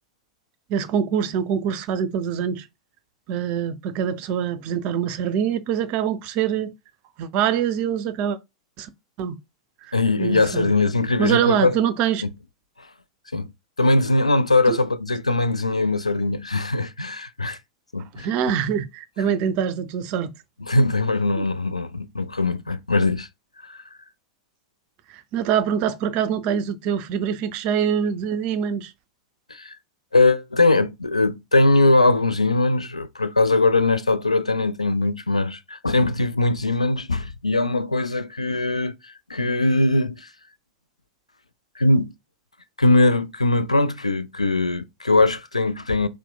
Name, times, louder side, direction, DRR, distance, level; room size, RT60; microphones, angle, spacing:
voice 1, 0.7-2.7 3.3-6.7 7.2-8.4 8.8-8.9 9.2-9.4 9.8-10.7 11.2-12.2 14.7-14.8 18.1-20.3 21.4-21.5 25.1-28.9, right 8 dB, 40° right, 0.5 m, -24 dB
voice 2, 9.9-11.8 13.3-13.5 13.8-17.6 17.9-18.3 20.7-23.3 23.6-23.8 29.5-29.7 30.1-40.3 41.8-42.1 42.8-46.1, left 2 dB, 90° left, 0.3 m, -21 dB
4.1 x 2.1 x 2.2 m
figure-of-eight pair, 95°, 3 cm